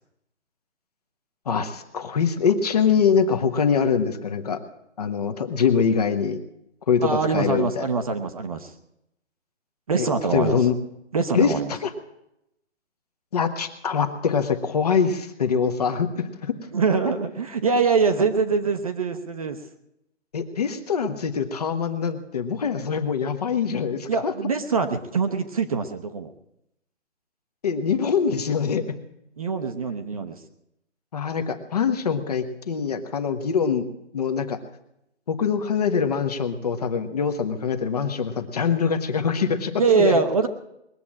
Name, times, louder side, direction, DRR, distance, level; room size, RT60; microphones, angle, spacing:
voice 1, 1.5-4.6 5.0-6.4 6.9-7.9 10.0-10.7 11.3-11.5 11.8-11.9 13.3-16.5 17.0-17.1 20.3-24.3 27.6-28.9 31.1-33.9 34.1-34.6 35.3-40.2, left 6 dB, 35° left, 9 dB, 1.0 m, -24 dB
voice 2, 7.0-8.7 9.9-10.6 11.1-11.7 16.7-19.6 24.1-26.3 29.4-30.4 39.8-40.5, right 4 dB, 30° right, 7 dB, 0.8 m, -23 dB
20.5 x 7.6 x 8.5 m, 0.83 s
hypercardioid pair, 170°, 35 cm